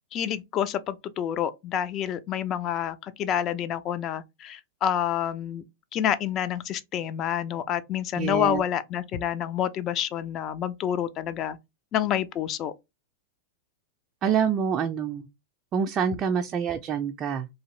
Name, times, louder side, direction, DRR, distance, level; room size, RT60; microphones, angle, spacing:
voice 1, 0.1-5.6 5.9-11.6 11.9-12.7, left 10 dB, 35° left, 0.4 m, -28 dB
voice 2, 8.1-8.6 14.2-15.3 15.7-17.5, right 7 dB, 30° right, 0.3 m, -26 dB
2.7 x 2.4 x 3.0 m
hypercardioid pair, 105°, 0 cm